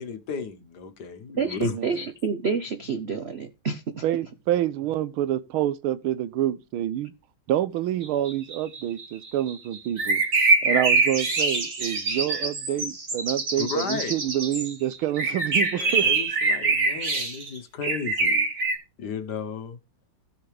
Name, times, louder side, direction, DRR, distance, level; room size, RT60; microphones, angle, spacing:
voice 1, 0.0-1.7 13.6-14.1 15.7-18.5 19.0-19.8, left 5 dB, 60° left, 1.5 m, -34 dB
voice 2, 1.4-4.0, right 5 dB, 65° right, 0.6 m, -28 dB
voice 3, 4.0-7.1 7.5-10.2 10.6-16.1, right 12 dB, 90° right, 1.6 m, -27 dB
sound 1, 8.0-18.8, right 3 dB, 40° right, 2.2 m, -24 dB
16.5 x 5.7 x 3.3 m
omnidirectional pair, 2.3 m